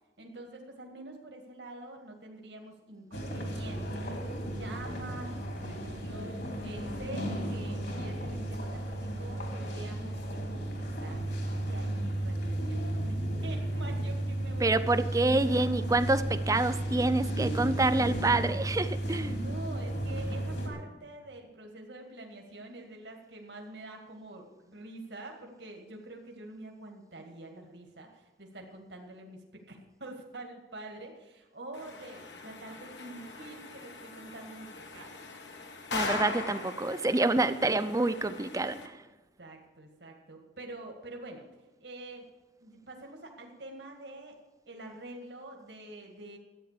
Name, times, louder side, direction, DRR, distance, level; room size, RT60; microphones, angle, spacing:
voice 1, 0.2-4.1 4.5-5.4 5.6-10.7 11.0-14.8 15.5-15.7 19.3-34.7 34.9-35.2 39.4-41.5 41.8-42.3 42.6-44.4 44.7-46.4, right 2 dB, 80° right, 2 dB, 2.1 m, -46 dB
sound 1, 3.1-20.7, right 1 dB, 65° left, 3.0 m, -34 dB
voice 2, 14.6-19.3 35.9-39.0, right 2 dB, 20° right, 12 dB, 0.6 m, -27 dB
sound 2, 31.7-38.9, left 3 dB, 85° left, 1.7 m, -40 dB
13.5 x 9.1 x 6.7 m, 1.1 s
head